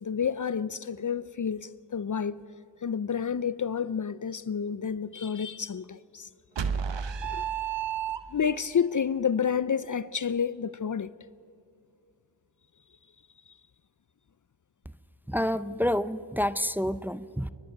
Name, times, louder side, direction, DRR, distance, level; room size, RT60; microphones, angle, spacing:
voice 1, 0.0-2.4 2.8-6.3 7.3-7.4 8.3-11.1, left 7 dB, 45° left, 0.5 m, -29 dB
sound 1, 6.6-8.7, right 7 dB, 90° right, 1.0 m, -31 dB
voice 2, 15.3-17.5, equal, 5° right, 0.7 m, -28 dB
30.0 x 11.5 x 9.4 m
cardioid pair, 40°, 42 cm